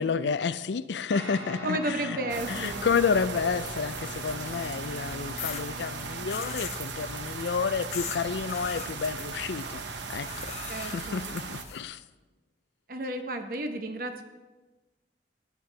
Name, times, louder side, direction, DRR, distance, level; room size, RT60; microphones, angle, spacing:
voice 1, 0.0-2.2 2.5-9.8 10.1-10.5 10.8-12.0, left 5 dB, 80° left, 15 dB, 0.4 m, -30 dB
Guitar, 1.1-10.9, equal, 35° right, 2.5 m, -44 dB
voice 2, 1.6-2.9 10.7-11.2 12.9-14.2, right 1 dB, 50° right, 6 dB, 0.9 m, -32 dB
sound 1, 2.3-11.6, right 4 dB, 90° right, 0.9 m, -38 dB
sound 2, 3.7-4.8 5.4-5.6 6.3-6.8 7.9-8.2 8.5-8.9 10.3-11.8, left 7 dB, 40° left, 0.8 m, -39 dB
14.0 x 9.7 x 3.4 m, 1.2 s
head